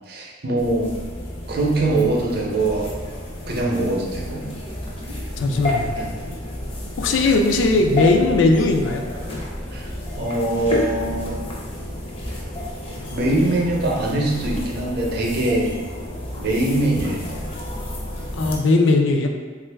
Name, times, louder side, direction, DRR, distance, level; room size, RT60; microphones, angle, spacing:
voice 1, 0.1-0.9 1.5-2.9 3.5-4.5 5.9-6.1 7.2-7.3 9.7-11.4 12.3-12.4 13.1-15.7 16.4-17.5, right 2 dB, 55° right, -1 dB, 0.6 m, -23 dB
sound 1, 0.6-18.6, left 1 dB, 30° left, 0.5 m, -31 dB
voice 2, 5.4-5.9 7.0-9.0 18.4-19.3, left 3 dB, 85° left, 4 dB, 0.4 m, -18 dB
3.0 x 2.4 x 3.3 m, 1.4 s
head